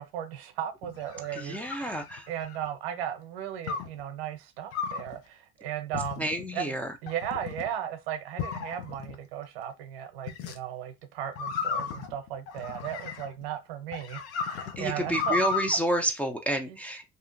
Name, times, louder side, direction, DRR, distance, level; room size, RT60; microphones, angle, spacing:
voice 1, 0.0-6.8 7.0-14.2 14.5-15.4 16.6-16.8, right 10 dB, 75° right, 0.7 m, -36 dB
sound 1, 0.8-2.7 3.7-4.0 4.7-5.1 5.9-6.5 7.1-7.7 8.4-9.2 10.3-10.6 11.4-13.4 13.9-15.8, left 5 dB, 50° left, 0.6 m, -34 dB
voice 2, 1.3-2.2 6.2-6.9 14.8-17.1, right 1 dB, 5° left, 0.4 m, -29 dB
2.7 x 2.4 x 2.5 m
hypercardioid pair, 80°, 30 cm